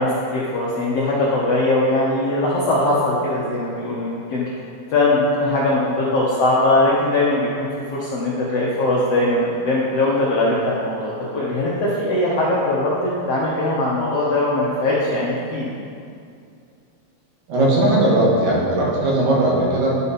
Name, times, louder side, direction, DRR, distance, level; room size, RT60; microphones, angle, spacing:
voice 1, 0.0-4.4 4.9-15.7, left 2 dB, 65° left, -6 dB, 1.5 m, -20 dB
voice 2, 17.5-20.0, right 1 dB, 70° right, -5 dB, 3.3 m, -18 dB
12.0 x 5.4 x 4.3 m, 2.4 s
omnidirectional pair, 4.2 m